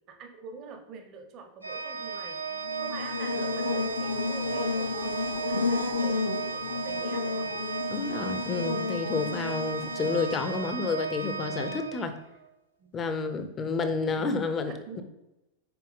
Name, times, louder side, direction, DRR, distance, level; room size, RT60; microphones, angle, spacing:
voice 1, 0.1-2.5 2.8-7.5 10.3-10.8 12.8-12.9 14.0-14.3 14.7-15.0, right 5 dB, 40° right, 5 dB, 0.9 m, -45 dB
Organ, 1.6-12.5, right 5 dB, 85° right, 0.4 m, -35 dB
Buzz, 2.6-10.7, left 4 dB, 85° left, 0.6 m, -32 dB
voice 2, 7.9-12.2 12.9-15.0, left 4 dB, 25° left, 8 dB, 0.6 m, -30 dB
5.9 x 4.4 x 3.6 m, 0.97 s
figure-of-eight pair, 90°, 0 cm